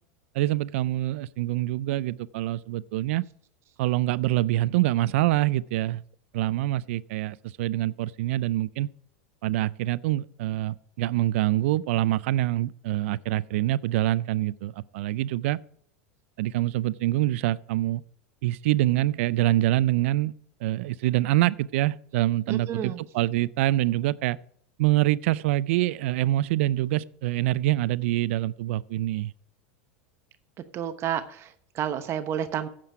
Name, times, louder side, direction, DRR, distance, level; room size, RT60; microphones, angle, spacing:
voice 1, 0.3-3.2 3.8-6.0 6.3-8.9 9.4-15.6 16.4-18.0 18.4-20.3 20.6-24.4 24.8-29.3, right 15 dB, 70° right, 0.4 m, -25 dB
voice 2, 22.5-23.0 30.7-32.7, right 9 dB, 40° right, 0.9 m, -30 dB
10.0 x 7.6 x 4.8 m
supercardioid pair, 120°, 7 cm